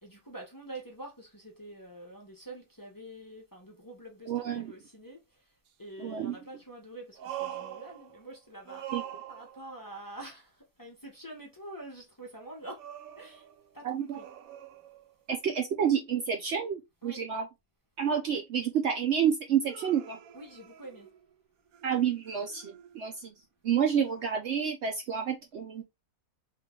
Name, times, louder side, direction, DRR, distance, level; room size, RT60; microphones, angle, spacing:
voice 1, 0.0-8.9 9.3-12.9 13.2-13.5 13.7-14.3 17.0-17.2 20.3-21.1, right 1 dB, 15° left, 0.8 m, -46 dB
voice 2, 4.3-4.7 6.0-6.4 8.9-9.0 13.8-14.2 15.3-17.4 18.0-20.2 21.8-23.3 23.6-25.8, right 8 dB, 65° right, 0.8 m, -29 dB
sound 1, 5.7-5.8 7.1-8.4 8.6-9.8 12.8-15.3 19.6-21.3 21.7-23.1 24.2-24.3, right 11 dB, 80° right, 1.0 m, -44 dB
3.0 x 2.8 x 3.6 m
omnidirectional pair, 1.5 m